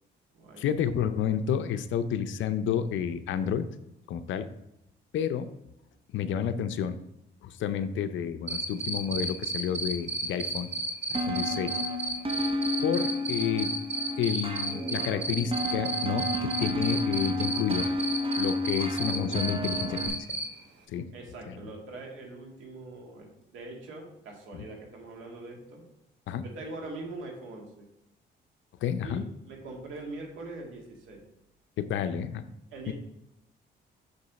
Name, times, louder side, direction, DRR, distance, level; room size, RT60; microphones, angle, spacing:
voice 1, 0.6-3.6 4.1-4.5 5.1-5.5 6.1-7.0 7.4-10.7 11.1-11.7 12.8-13.7 14.2-16.3 16.6-17.9 18.4-20.2 20.9-21.1 21.5-21.6 24.5-24.6 26.3-26.5 28.8-29.2 31.9-32.4 32.9-33.0, left 8 dB, 75° left, 11 dB, 0.6 m, -30 dB
Cricket, 8.5-20.4, right 3 dB, 65° right, 1.3 m, -32 dB
sound 1, 11.1-20.1, left 1 dB, 30° right, 1.1 m, -31 dB
voice 2, 21.1-25.8 26.4-27.9 29.0-31.2 32.7-32.9, right 2 dB, 80° right, 0 dB, 2.0 m, -42 dB
6.5 x 5.3 x 4.1 m, 0.87 s
cardioid pair, 90°, 20 cm